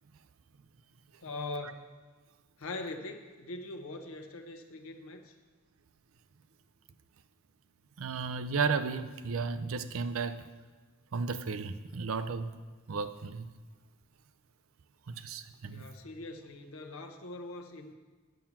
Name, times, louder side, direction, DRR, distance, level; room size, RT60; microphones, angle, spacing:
voice 1, 1.2-1.8 2.6-5.4 15.6-17.9, left 2 dB, 75° left, 0.8 m, -42 dB
voice 2, 8.0-10.4 11.1-12.5 12.9-13.5 15.2-15.8, right 5 dB, 70° right, 0.5 m, -33 dB
9.3 x 7.2 x 5.8 m
head